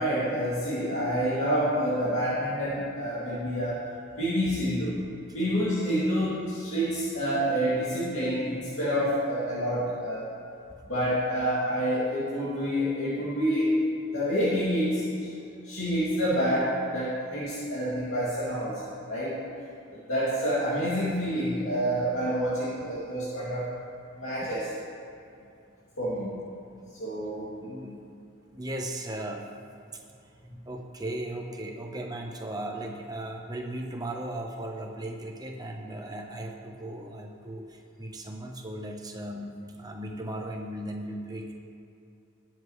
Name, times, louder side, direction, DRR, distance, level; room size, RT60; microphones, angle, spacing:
voice 1, 0.0-3.8 4.2-5.0 5.3-10.3 10.9-13.7 14.1-15.3 15.6-19.4 19.9-23.7 24.2-24.7 26.0-26.3 27.0-27.5, equal, 70° left, -10 dB, 2.5 m, -28 dB
voice 2, 27.6-28.1 28.5-29.5 29.9-30.0 30.7-41.5, right 1 dB, 20° right, 2 dB, 0.9 m, -37 dB
19.5 x 7.5 x 3.2 m, 2.6 s
head